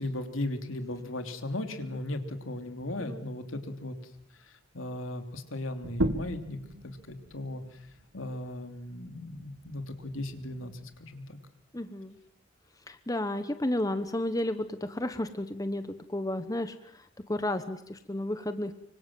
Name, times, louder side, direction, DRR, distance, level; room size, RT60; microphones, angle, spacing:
voice 1, 0.0-4.0 4.4-7.9 8.1-11.4, left 1 dB, 80° left, 6 dB, 3.1 m, -37 dB
sound 1, 5.8-11.0, right 1 dB, 85° right, 2.1 m, -38 dB
voice 2, 11.7-12.2 12.9-18.7, left 1 dB, 15° left, 10 dB, 1.0 m, -32 dB
25.5 x 25.0 x 7.6 m, 0.72 s
head